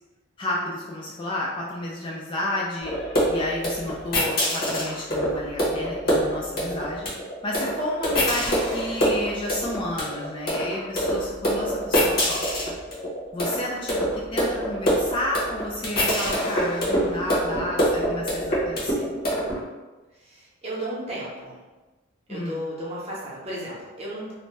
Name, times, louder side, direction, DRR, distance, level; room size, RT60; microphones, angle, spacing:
voice 1, 0.4-2.9 3.3-7.1 7.4-12.6 13.3-14.0 14.3-19.1 22.3-22.6, left 1 dB, 25° left, -4 dB, 0.3 m, -31 dB
sound 1, 2.8-19.6, equal, 45° left, 1.0 m, -24 dB
voice 2, 20.1-21.6 22.3-24.3, right 1 dB, 30° right, -6 dB, 0.8 m, -34 dB
2.6 x 2.2 x 3.1 m, 1.2 s
head